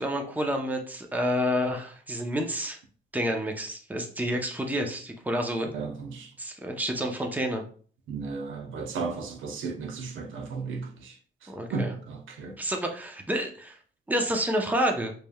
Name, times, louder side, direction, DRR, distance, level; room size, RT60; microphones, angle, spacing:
voice 1, 0.0-2.8 3.1-5.7 6.4-7.6 11.5-12.0 12.6-13.8 14.1-15.1, equal, 10° right, 0.8 m, -29 dB
voice 2, 5.7-6.3 8.1-11.1 11.7-12.5, right 4 dB, 80° right, 0.8 m, -34 dB
5.1 x 3.2 x 2.3 m
cardioid pair, 90°, 20 cm